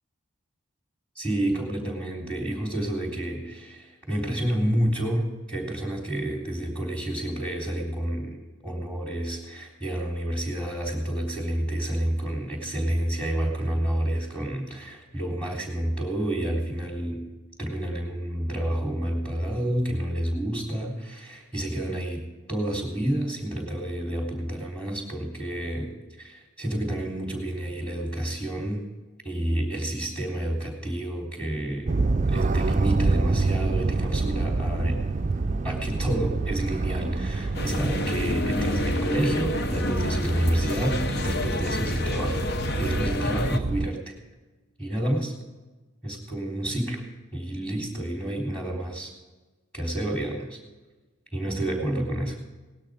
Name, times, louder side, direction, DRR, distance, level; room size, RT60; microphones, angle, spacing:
voice 1, 1.2-17.2 17.6-25.9 26.2-28.8 29.2-32.0 32.3-35.0 35.6-42.4 42.8-44.2 44.8-45.3 46.0-47.0 47.3-49.1 49.7-50.6 51.3-52.4, right 1 dB, 5° left, -1 dB, 3.5 m, -29 dB
sound 1, 31.9-43.9, right 3 dB, 35° right, 0.4 m, -27 dB
sound 2, 37.5-43.6, left 3 dB, 50° left, 0.8 m, -30 dB
18.5 x 12.5 x 5.0 m, 1.2 s
head